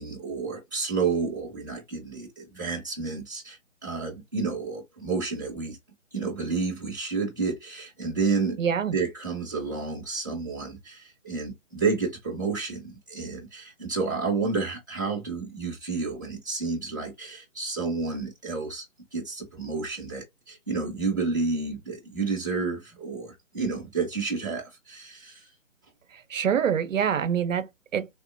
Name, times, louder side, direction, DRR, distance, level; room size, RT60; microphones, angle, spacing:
voice 1, 0.0-5.8 6.1-8.6 8.9-18.9 19.1-25.5, right 4 dB, 15° right, 0.5 m, -30 dB
voice 2, 8.6-9.0 26.1-28.1, right 8 dB, 75° right, 0.5 m, -26 dB
3.5 x 2.0 x 2.5 m
figure-of-eight pair, 155°, 40 cm